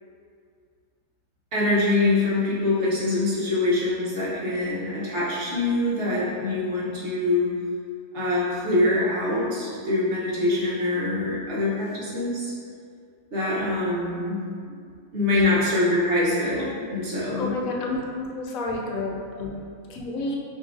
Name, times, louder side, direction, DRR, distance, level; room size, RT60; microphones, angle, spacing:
voice 1, 1.5-7.5 8.1-12.5 13.3-14.4 15.1-17.5, left 2 dB, 60° right, -8 dB, 1.2 m, -24 dB
voice 2, 17.4-20.4, left 2 dB, 85° left, 0 dB, 1.0 m, -31 dB
5.4 x 2.7 x 2.5 m, 2.3 s
omnidirectional pair, 1.4 m